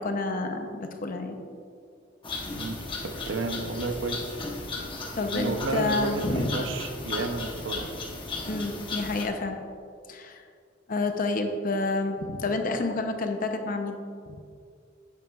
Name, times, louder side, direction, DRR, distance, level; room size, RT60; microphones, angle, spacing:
voice 1, 0.0-1.5 5.1-6.5 8.5-9.6 10.1-10.4 10.9-14.0, left 3 dB, 45° left, 5 dB, 0.7 m, -29 dB
sound 1, 2.2-9.3, left 3 dB, 25° left, 0.9 m, -35 dB
voice 2, 3.3-4.4 5.3-7.9, right 3 dB, 65° right, 6 dB, 0.6 m, -31 dB
9.2 x 9.2 x 2.4 m, 2.3 s
head